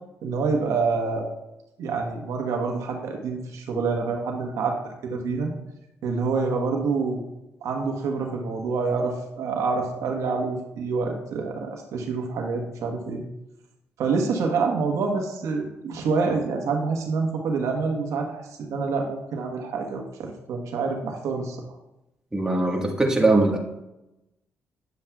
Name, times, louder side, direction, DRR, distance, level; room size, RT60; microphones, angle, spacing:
voice 1, 0.2-1.3 1.8-5.5 6.0-7.2 7.6-13.2 14.0-21.6, right 4 dB, 80° right, 2 dB, 1.2 m, -27 dB
voice 2, 22.3-23.6, right 2 dB, 10° right, 0 dB, 1.5 m, -21 dB
9.3 x 7.4 x 2.3 m, 0.91 s
cardioid pair, 80°, 5 cm